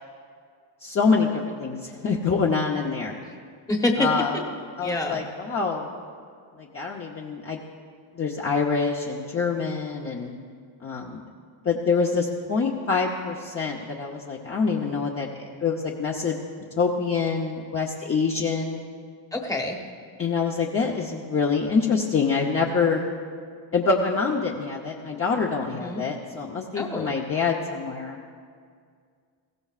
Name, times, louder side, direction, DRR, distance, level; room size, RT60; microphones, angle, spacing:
voice 1, 0.8-3.2 4.0-4.4 4.8-5.9 6.6-7.6 8.1-10.3 10.8-11.2 11.6-16.3 16.8-18.8 20.2-23.1 23.7-28.2, left 5 dB, 30° left, -2 dB, 0.8 m, -25 dB
voice 2, 3.7-4.1 4.8-5.2 19.3-19.8 25.7-26.0 26.7-27.1, left 2 dB, 5° left, 1 dB, 1.1 m, -27 dB
21.0 x 16.0 x 2.4 m, 2.1 s
cardioid pair, 165°, 50 cm